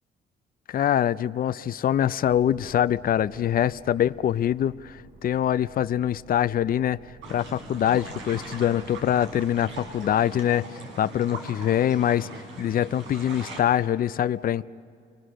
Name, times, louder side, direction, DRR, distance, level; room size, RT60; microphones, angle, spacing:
voice 1, 0.7-7.0 7.3-10.7 11.0-12.3 12.6-14.6, left 10 dB, 45° left, 15 dB, 0.5 m, -24 dB
sound 1, 2.2-10.3, right 2 dB, 50° right, 4.4 m, -51 dB
sound 2, 7.2-13.6, right 2 dB, 90° right, 4.3 m, -40 dB
30.0 x 22.0 x 6.4 m, 2.3 s
cardioid pair, 90°, 20 cm